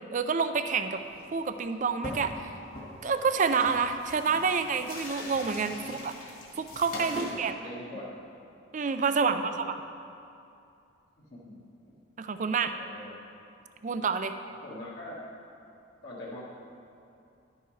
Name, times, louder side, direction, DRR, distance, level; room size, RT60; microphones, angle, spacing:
voice 1, 0.1-1.0 1.3-2.5 3.0-5.8 6.0-6.1 6.6-7.5 8.7-9.8 12.2-12.7 13.8-14.3, right 5 dB, 40° right, 9 dB, 0.4 m, -28 dB
sound 1, 1.0-1.4 1.7-1.8 2.0-2.4 2.7-7.3, left 1 dB, 45° left, 1.7 m, -42 dB
voice 2, 5.6-6.0 7.1-8.2 9.2-9.7 11.3-11.9 12.6-13.2 14.6-15.2 16.0-16.4, left 1 dB, 65° left, -7 dB, 1.5 m, -43 dB
11.5 x 9.1 x 3.2 m, 2.6 s
head